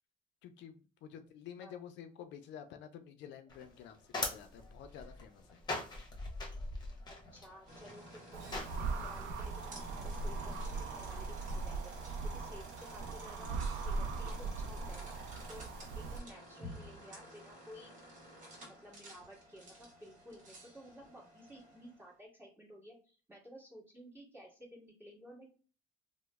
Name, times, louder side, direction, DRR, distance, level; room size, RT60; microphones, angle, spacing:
voice 1, 0.4-5.6, left 9 dB, 75° left, 8 dB, 0.5 m, -50 dB
sound 1, 3.5-9.1, left 2 dB, 25° left, 1.0 m, -42 dB
voice 2, 7.1-15.2 15.5-18.0 18.7-25.5, equal, 10° right, -3 dB, 1.6 m, -54 dB
sound 2, 7.7-22.1, equal, 45° right, 1.3 m, -53 dB
sound 3, 8.3-16.2, right 3 dB, 90° right, 0.5 m, -39 dB
3.0 x 2.1 x 3.4 m, 0.36 s
cardioid pair, 115°, 18 cm